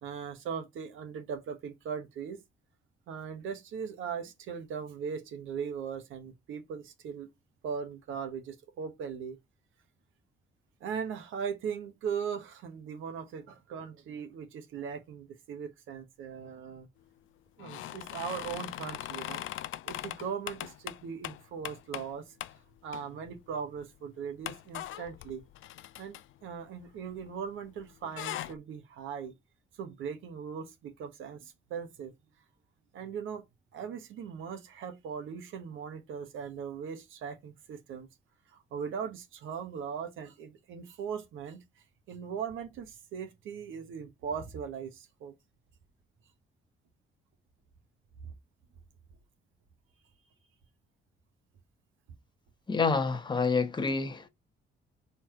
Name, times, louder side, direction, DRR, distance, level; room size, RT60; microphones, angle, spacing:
voice 1, 0.0-2.4 3.1-7.3 7.6-9.4 10.8-16.9 17.6-19.4 19.8-22.3 22.8-25.4 26.0-29.3 29.8-32.1 32.9-33.4 33.7-38.1 38.5-41.6 42.1-45.3 48.2-48.3, right 7 dB, 80° right, 1.4 m, -39 dB
sound 1, 17.6-22.1 22.4-22.6 22.9-23.4 23.8-23.9 24.4-27.5 27.8-28.5, left 14 dB, 80° left, 0.5 m, -40 dB
voice 2, 52.7-54.3, left 4 dB, 20° left, 1.1 m, -28 dB
4.8 x 4.4 x 5.8 m
cardioid pair, 90°, 20 cm